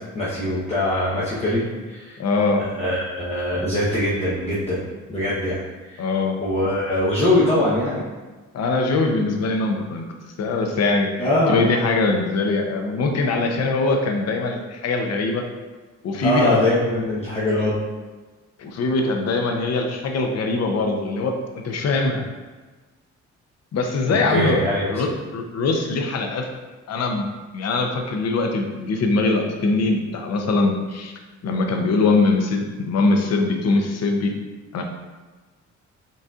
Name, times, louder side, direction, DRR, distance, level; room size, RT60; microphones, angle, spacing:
voice 1, 0.1-2.2 2.6-4.8 5.1-6.0 6.4-8.0 11.2-11.7 16.2-17.8 24.1-25.1, left 1 dB, 20° left, -9 dB, 0.9 m, -22 dB
voice 2, 2.2-2.7 6.0-6.4 8.5-10.1 10.4-11.1 11.5-15.4 16.0-16.7 18.6-21.4 21.6-22.2 23.7-24.6 24.9-26.5 26.9-27.3 27.5-31.1 31.4-34.4 34.7-34.8, left 3 dB, 60° left, 3 dB, 0.7 m, -22 dB
3.9 x 3.9 x 2.4 m, 1.3 s
cardioid pair, 90°, 30 cm